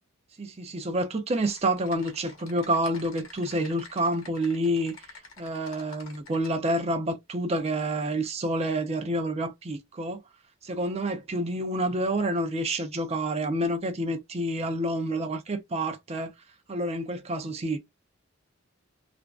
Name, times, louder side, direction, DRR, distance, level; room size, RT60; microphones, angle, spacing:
voice 1, 0.4-5.0 5.4-10.2 10.6-16.3 16.7-17.8, right 1 dB, 30° right, 0.5 m, -28 dB
Typing, 1.3-6.5, left 4 dB, 85° left, 0.8 m, -49 dB
2.5 x 2.2 x 2.3 m
head